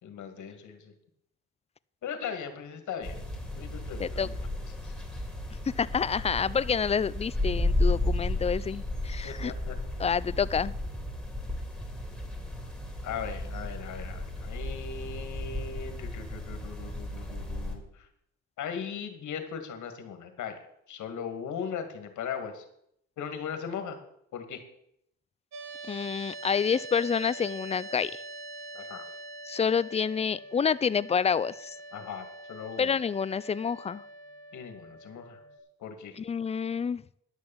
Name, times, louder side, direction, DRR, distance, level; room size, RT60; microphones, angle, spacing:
voice 1, 0.0-0.9 2.0-3.2 3.6-4.3 4.8-4.9 9.2-9.8 13.0-17.8 18.6-20.6 20.9-22.6 23.2-24.0 24.3-24.6 28.7-29.0 31.9-32.9 34.5-35.4 35.8-36.2, left 7 dB, 75° left, 7 dB, 2.1 m, -38 dB
sound 1, 3.0-17.8, left 1 dB, ahead, 3.2 m, -33 dB
voice 2, 5.8-9.5 10.0-10.7 25.9-28.2 29.5-31.8 32.8-34.0 36.2-37.0, left 6 dB, 20° left, 19 dB, 0.4 m, -28 dB
sound 2, 25.5-35.6, right 2 dB, 65° right, 1.8 m, -44 dB
11.0 x 6.6 x 7.2 m, 0.73 s
cardioid pair, 90°, 30 cm